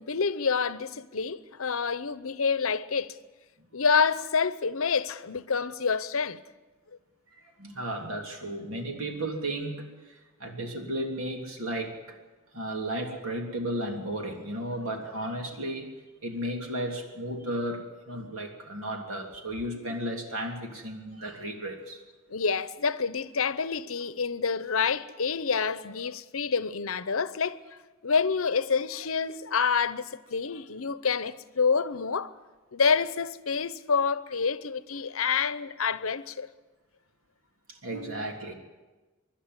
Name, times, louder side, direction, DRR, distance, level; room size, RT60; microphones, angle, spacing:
voice 1, 0.0-3.2 3.7-6.4 22.3-27.6 28.0-32.3 32.7-36.5, left 5 dB, 75° left, 0.8 m, -27 dB
voice 2, 7.6-12.2 12.5-15.9 16.2-22.0 37.8-38.5, right 1 dB, 80° right, 3.3 m, -34 dB
25.0 x 11.5 x 9.7 m
head